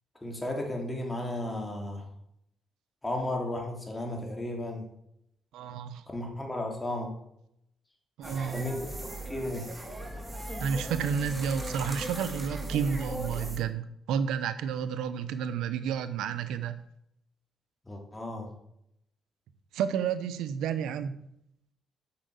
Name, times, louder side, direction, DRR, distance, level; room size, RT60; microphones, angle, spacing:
voice 1, 0.2-2.0 3.0-4.8 6.1-7.2 8.5-9.7 17.9-18.5, left 1 dB, 15° left, 1 dB, 3.3 m, -34 dB
voice 2, 5.5-6.0 8.2-8.7 10.6-16.8 19.7-21.2, right 7 dB, 85° right, 12 dB, 0.8 m, -31 dB
sound 1, 8.2-13.6, right 1 dB, 20° right, 2.3 m, -37 dB
8.6 x 6.6 x 7.9 m, 0.76 s
cardioid pair, 90°, 0 cm